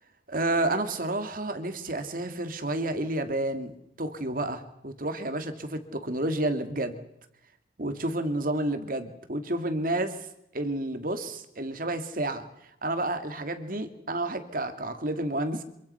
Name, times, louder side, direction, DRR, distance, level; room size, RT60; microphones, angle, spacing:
voice 1, 0.3-7.0 7.8-10.2 10.5-12.4 12.8-15.6, right 1 dB, 50° right, 8 dB, 2.5 m, -30 dB
26.5 x 24.5 x 5.8 m, 0.79 s
head